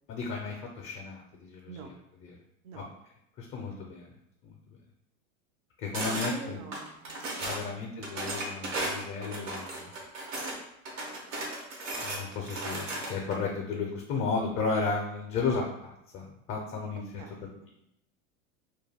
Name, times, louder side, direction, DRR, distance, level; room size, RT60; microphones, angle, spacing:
voice 1, 0.1-1.9 2.2-2.3 2.7-2.9 3.4-4.1 4.4-4.8 5.8-6.6 7.4-9.9 12.0-17.0, left 4 dB, 35° left, 0 dB, 0.4 m, -34 dB
voice 2, 1.7-2.0 2.6-2.9 6.0-8.1 17.2-17.5, right 5 dB, 50° right, 5 dB, 0.5 m, -46 dB
sound 1, 5.9-6.3 6.7-7.7 8.0-10.6 10.9-13.4, right 2 dB, 80° right, 1.0 m, -35 dB
2.3 x 2.2 x 3.3 m, 0.80 s
supercardioid pair, 130°, 38 cm